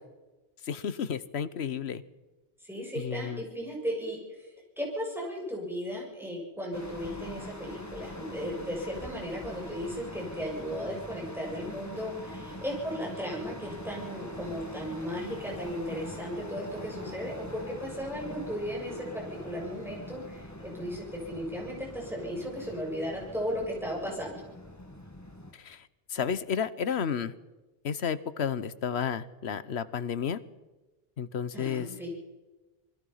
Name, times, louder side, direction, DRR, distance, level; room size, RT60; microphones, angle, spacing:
voice 1, 0.6-2.0 2.9-3.4 25.5-27.3 27.8-30.4 31.2-31.9, left 7 dB, 85° left, 15 dB, 1.2 m, -32 dB
voice 2, 2.7-24.4 31.5-32.1, equal, ahead, -2 dB, 7.2 m, -36 dB
sound 1, 6.7-25.5, left 1 dB, 15° left, 1.8 m, -43 dB
27.0 x 21.0 x 5.6 m, 1.2 s
omnidirectional pair, 1.1 m